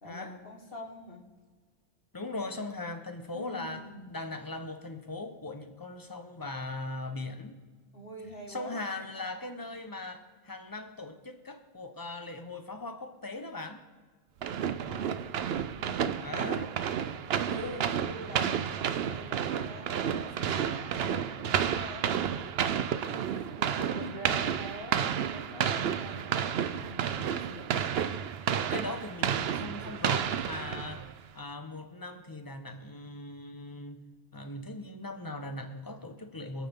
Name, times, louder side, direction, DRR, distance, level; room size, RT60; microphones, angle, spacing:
voice 1, 0.0-1.2 3.3-4.1 7.9-8.8 14.6-15.2 15.8-27.8, left 1 dB, 60° left, 1 dB, 2.3 m, -45 dB
voice 2, 2.1-7.6 8.5-13.8 16.2-16.7 28.5-31.1 31.3-34.0 34.3-36.7, left 2 dB, 20° left, 7 dB, 1.1 m, -39 dB
sound 1, 14.4-31.2, right 8 dB, 70° right, 0.9 m, -31 dB
26.5 x 8.8 x 3.7 m, 1.4 s
omnidirectional pair, 1.1 m